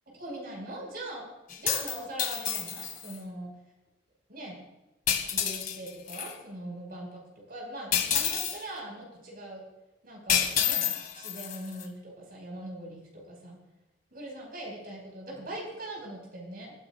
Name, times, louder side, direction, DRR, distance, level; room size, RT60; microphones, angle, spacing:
voice 1, 0.2-1.3 1.6-3.5 4.3-4.6 5.2-9.7 10.0-13.6 14.1-16.7, right 1 dB, 50° right, -1 dB, 5.3 m, -41 dB
sound 1, 1.5-3.2 5.1-6.3 7.9-8.6 10.3-11.8, left 8 dB, 45° left, 2.0 m, -29 dB
28.0 x 15.0 x 2.5 m, 0.98 s
head